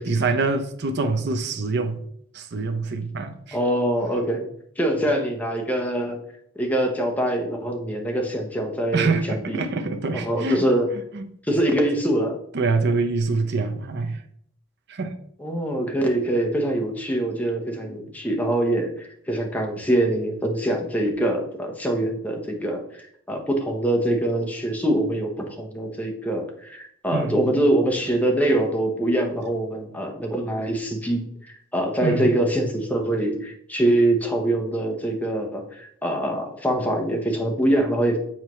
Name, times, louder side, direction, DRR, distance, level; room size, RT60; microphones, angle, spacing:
voice 1, 0.0-2.0 2.3-3.6 8.9-10.6 11.1-11.3 12.5-14.2 14.9-15.2 17.8-17.9 27.1-27.4 32.0-32.3, right 3 dB, 55° right, 0.6 m, -25 dB
voice 2, 3.5-4.5 4.8-6.2 6.6-9.2 9.5-9.6 10.1-10.9 11.5-12.4 15.4-22.8 23.3-38.2, right 1 dB, 10° left, 0.9 m, -24 dB
7.2 x 4.4 x 3.1 m
head